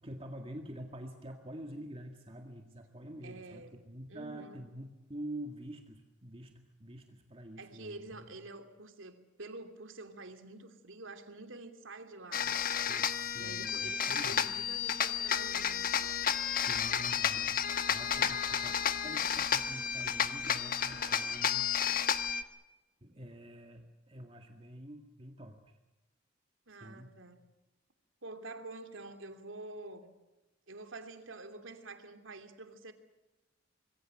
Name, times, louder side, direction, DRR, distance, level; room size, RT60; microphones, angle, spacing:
voice 1, 0.0-8.3 12.4-12.6 12.9-14.6 16.0-16.2 16.6-21.7 22.0-22.1 23.0-25.7 26.7-27.1, right 1 dB, 30° right, 2.0 m, -47 dB
voice 2, 3.2-3.8 4.1-4.6 7.6-12.6 13.3-16.0 26.7-27.4 28.2-30.1 30.7-32.9, right 2 dB, 90° right, 2.9 m, -47 dB
sound 1, 12.3-22.4, left 8 dB, 45° left, 1.2 m, -32 dB
26.5 x 22.0 x 7.8 m
head